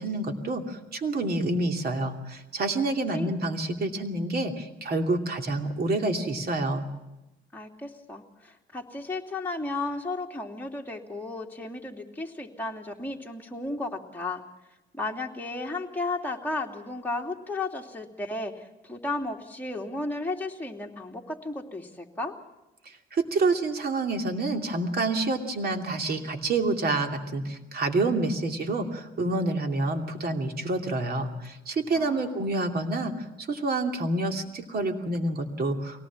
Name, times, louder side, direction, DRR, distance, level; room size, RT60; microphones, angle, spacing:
voice 1, 0.0-6.9 22.8-36.0, right 2 dB, 50° right, 4 dB, 2.8 m, -28 dB
voice 2, 7.5-14.4 14.9-22.3 31.9-32.6, left 2 dB, 10° left, 0 dB, 2.9 m, -34 dB
23.5 x 18.5 x 7.4 m, 1.0 s
cardioid pair, 90°, 20 cm